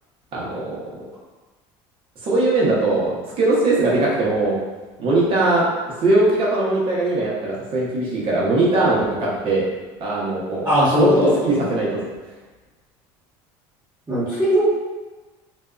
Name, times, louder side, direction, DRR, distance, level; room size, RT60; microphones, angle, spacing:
voice 1, 0.3-0.8 2.2-4.6 5.0-5.6 6.0-9.6 10.0-10.7 10.9-12.0, right 2 dB, 50° right, -5 dB, 0.9 m, -20 dB
voice 2, 10.6-11.3 14.1-14.6, left 1 dB, 20° right, -14 dB, 1.2 m, -18 dB
2.6 x 2.3 x 2.3 m, 1.2 s
supercardioid pair, 110°, 12 cm